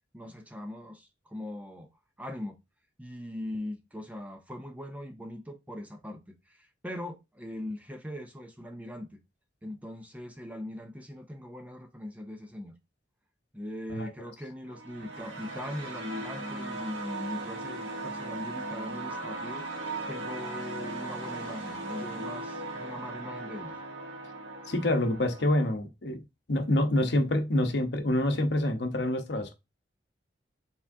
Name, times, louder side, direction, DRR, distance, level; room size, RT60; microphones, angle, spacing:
voice 1, 0.1-1.9 2.2-2.6 3.0-9.2 9.6-12.7 13.5-19.7 20.1-23.8, left 1 dB, 10° right, 0.5 m, -40 dB
sound 1, 14.7-25.7, right 2 dB, 85° right, 1.2 m, -38 dB
voice 2, 24.7-26.2 26.5-29.5, left 1 dB, 60° left, 0.8 m, -27 dB
4.7 x 3.6 x 2.6 m
head